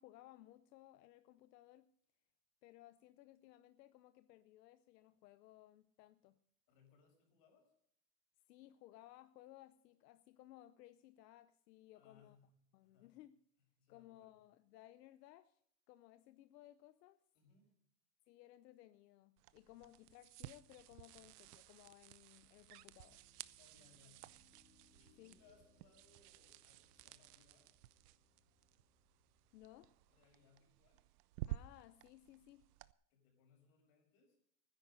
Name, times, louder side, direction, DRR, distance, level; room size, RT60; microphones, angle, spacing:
voice 1, 0.0-1.9 2.6-6.4 8.5-12.4 12.7-13.4 13.9-15.6 15.9-17.2 18.3-23.2 25.2-25.4 29.5-29.9 31.4-32.7, left 14 dB, 85° left, 0.8 m, -61 dB
voice 2, 6.7-7.7 11.9-12.6 12.8-13.2 13.8-14.4 17.3-17.7 19.7-19.9 23.6-24.3 24.9-27.7 30.1-31.0 33.1-34.4, left 5 dB, 45° left, 6.1 m, -70 dB
sound 1, 19.4-32.9, right 16 dB, 70° right, 0.7 m, -54 dB
Piano, 23.1-30.6, left 5 dB, 10° left, 0.5 m, -76 dB
17.5 x 10.5 x 5.4 m
supercardioid pair, 175°, 48 cm